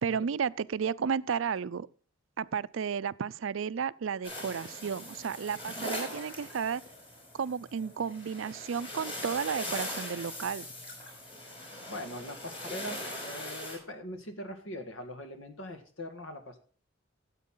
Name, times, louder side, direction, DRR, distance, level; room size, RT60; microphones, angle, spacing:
voice 1, 0.0-1.9 2.4-6.8 7.3-10.7, right 6 dB, 70° right, 0.4 m, -33 dB
sound 1, 4.2-13.8, left 1 dB, 30° left, 5.2 m, -41 dB
voice 2, 11.9-16.6, left 1 dB, 75° left, 1.9 m, -41 dB
13.5 x 8.3 x 3.8 m
head